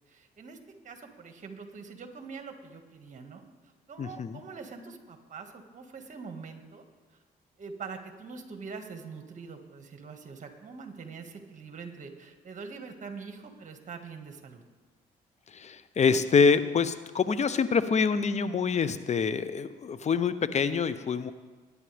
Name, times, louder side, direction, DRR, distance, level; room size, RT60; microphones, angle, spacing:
voice 1, 0.1-0.6 0.8-3.5 3.9-6.8 7.6-14.6, right 5 dB, 50° right, 5 dB, 1.8 m, -44 dB
voice 2, 4.0-4.4 15.5-21.3, left 5 dB, 40° left, 13 dB, 0.8 m, -26 dB
20.0 x 9.8 x 3.4 m, 1.4 s
supercardioid pair, 70°, 17 cm